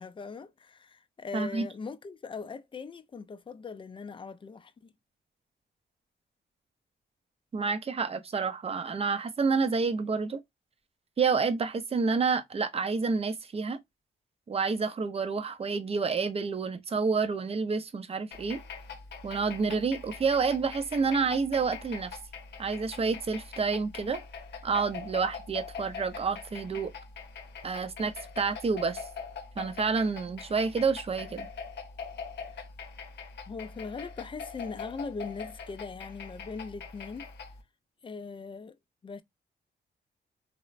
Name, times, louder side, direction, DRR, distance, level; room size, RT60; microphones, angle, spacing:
voice 1, 0.0-4.9 33.5-37.3 38.0-38.8 39.0-39.2, left 4 dB, 30° left, 0.3 m, -40 dB
voice 2, 1.3-1.7 7.5-10.4 11.2-13.8 14.5-18.6 19.2-22.1 22.6-24.2 24.6-26.9 27.6-29.0 29.6-31.5, right 5 dB, 35° right, 0.5 m, -29 dB
sound 1, 18.3-37.6, left 5 dB, 70° left, 0.7 m, -43 dB
3.0 x 2.0 x 2.4 m
cardioid pair, 80°, 18 cm